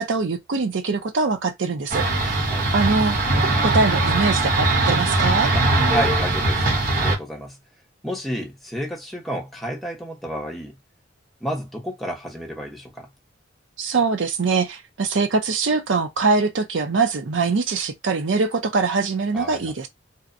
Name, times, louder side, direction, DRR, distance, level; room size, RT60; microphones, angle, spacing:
voice 1, 0.0-2.5 2.7-3.2 3.4-5.5 13.8-19.9, right 4 dB, 75° right, 0.6 m, -23 dB
sound 1, 1.9-7.2, right 2 dB, 50° right, 1.0 m, -20 dB
voice 2, 2.2-2.7 5.5-7.6 8.0-10.8 11.4-13.1 19.3-19.9, equal, ahead, 0.8 m, -31 dB
2.7 x 2.2 x 2.5 m
head